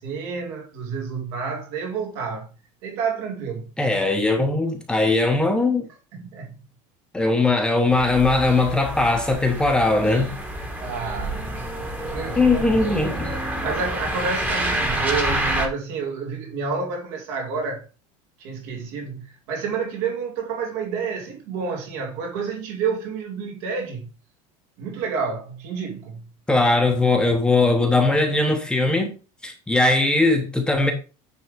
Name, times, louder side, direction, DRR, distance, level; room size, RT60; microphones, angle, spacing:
voice 1, 0.0-2.5 2.8-3.7 6.1-6.6 10.8-11.5 12.1-12.7 13.1-17.9 18.4-24.1 24.8-26.3, right 5 dB, 65° right, 2.4 m, -29 dB
voice 2, 3.8-5.9 7.1-10.3 12.4-13.4 26.5-29.1 29.4-30.9, left 2 dB, 5° left, 1.0 m, -20 dB
sound 1, 7.9-15.7, right 1 dB, 10° right, 1.3 m, -28 dB
9.5 x 3.9 x 5.1 m
cardioid pair, 175°, 16 cm